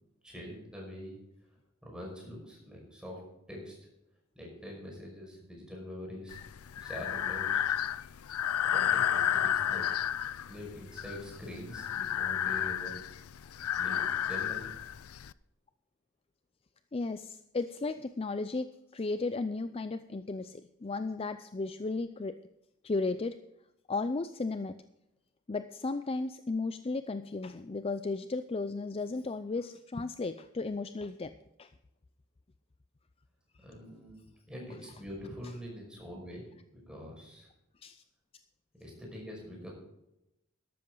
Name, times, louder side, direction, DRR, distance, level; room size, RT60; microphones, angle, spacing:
voice 1, 0.2-1.2 1.8-3.2 3.5-3.8 4.4-6.4 6.8-7.8 8.6-9.8 10.3-13.0 13.8-14.8 33.6-36.5 36.7-37.5 38.8-39.7, equal, 5° right, -2 dB, 5.4 m, -44 dB
Breathing, 6.3-15.3, left 10 dB, 80° left, 0.5 m, -32 dB
voice 2, 16.9-22.4 22.8-23.4 23.9-24.8 25.5-31.3 31.6-31.7 37.8-38.0, left 3 dB, 25° left, 11 dB, 0.4 m, -35 dB
13.0 x 12.5 x 3.9 m, 0.88 s
head